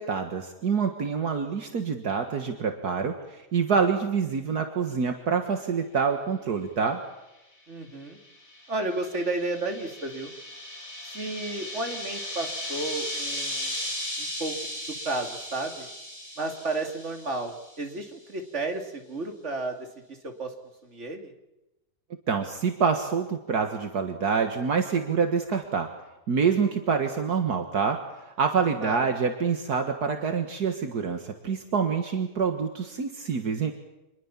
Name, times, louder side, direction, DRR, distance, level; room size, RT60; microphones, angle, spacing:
voice 1, 0.0-7.0 22.3-25.9 26.3-28.0 28.3-33.7, right 5 dB, 65° right, 6 dB, 2.1 m, -26 dB
voice 2, 7.7-8.2 8.7-10.3 11.1-13.7 14.2-14.5 14.9-15.9 16.4-20.5 20.8-21.3 28.8-29.0, right 2 dB, 45° right, 5 dB, 3.1 m, -32 dB
sound 1, 8.1-17.9, left 1 dB, 45° left, 7.1 m, -36 dB
26.5 x 21.5 x 7.3 m, 0.96 s
omnidirectional pair, 1.8 m